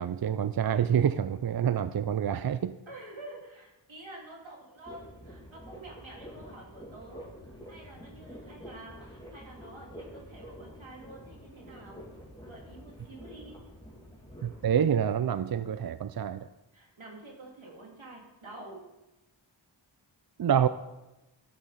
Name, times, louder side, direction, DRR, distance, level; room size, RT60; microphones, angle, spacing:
voice 1, 0.0-2.8 14.4-16.5 20.4-20.7, right 8 dB, 55° right, 13 dB, 0.5 m, -27 dB
voice 2, 2.9-12.0 12.4-13.6 16.7-18.8, right 2 dB, 85° right, -2 dB, 2.7 m, -48 dB
sound 1, 4.8-14.7, equal, 10° left, 2.6 m, -48 dB
12.0 x 7.6 x 4.1 m, 0.98 s
wide cardioid pair, 45°, 46 cm